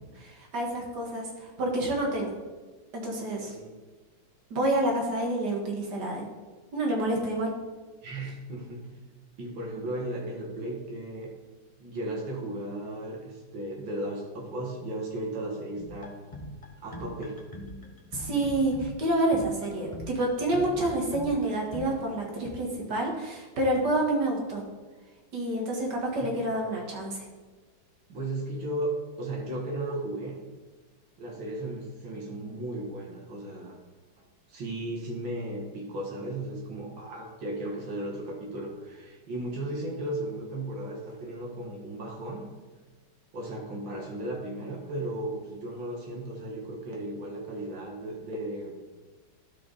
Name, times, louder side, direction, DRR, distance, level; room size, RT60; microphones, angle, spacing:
voice 1, 0.2-2.4 2.9-3.5 4.5-6.3 6.7-7.6 18.1-24.6 25.3-27.3, right 1 dB, 60° right, -1 dB, 2.3 m, -28 dB
voice 2, 3.2-3.7 8.0-8.9 9.4-11.3 11.8-16.1 16.8-17.4 26.2-26.3 28.1-30.4 31.2-33.8 34.5-42.4 43.3-48.7, right 1 dB, 80° right, -2 dB, 2.5 m, -35 dB
sound 1, 15.8-21.9, left 1 dB, 25° left, 0.8 m, -42 dB
12.0 x 5.1 x 4.1 m, 1.3 s
omnidirectional pair, 2.1 m